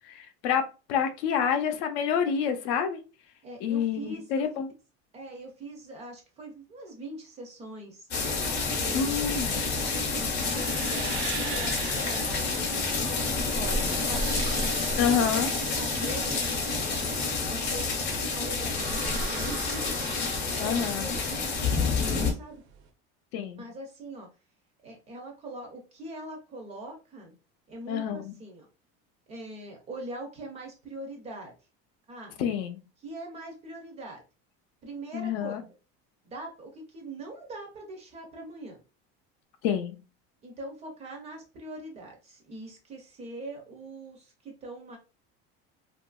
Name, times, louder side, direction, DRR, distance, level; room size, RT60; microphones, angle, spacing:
voice 1, 0.1-0.6 0.9-3.0 3.6-4.7 8.9-9.5 15.0-15.5 20.6-21.1 23.3-23.6 27.9-28.3 32.4-32.8 35.1-35.6 39.6-40.0, left 7 dB, 80° left, 8 dB, 0.6 m, -28 dB
voice 2, 3.4-4.4 5.1-8.1 8.7-9.7 10.2-10.5 10.7-14.3 14.9-15.1 15.8-22.6 23.6-24.3 24.8-27.3 27.7-28.7 29.3-31.5 32.1-32.5 33.0-34.2 34.8-35.6 36.2-38.8 40.4-45.0, right 2 dB, 20° right, 2 dB, 0.4 m, -42 dB
sound 1, 8.1-22.3, left 4 dB, 35° left, 0.6 m, -29 dB
sound 2, 9.1-22.8, right 6 dB, 80° right, 0.6 m, -40 dB
2.8 x 2.4 x 2.2 m, 0.32 s
cardioid pair, 175°, 30 cm